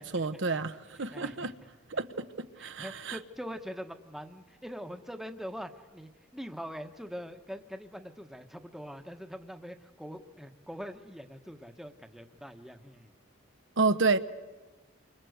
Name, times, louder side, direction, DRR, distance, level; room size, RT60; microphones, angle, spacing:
voice 1, 0.0-1.5 1.9-3.2 13.8-14.2, right 4 dB, 65° right, 1.1 m, -30 dB
voice 2, 1.1-1.5 2.6-13.1, equal, ahead, 1.2 m, -43 dB
29.0 x 25.5 x 8.0 m
head